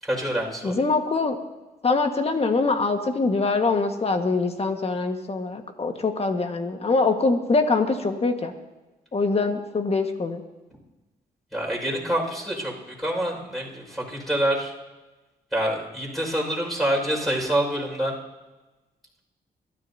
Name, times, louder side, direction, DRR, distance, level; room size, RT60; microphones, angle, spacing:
voice 1, 0.0-0.8 11.5-14.7 15.5-18.2, right 1 dB, ahead, -4 dB, 5.4 m, -26 dB
voice 2, 0.6-1.4 1.8-8.5 9.1-10.4, left 3 dB, 40° left, 5 dB, 1.6 m, -23 dB
22.5 x 13.0 x 2.8 m, 1.1 s
cardioid pair, 75°, 16 cm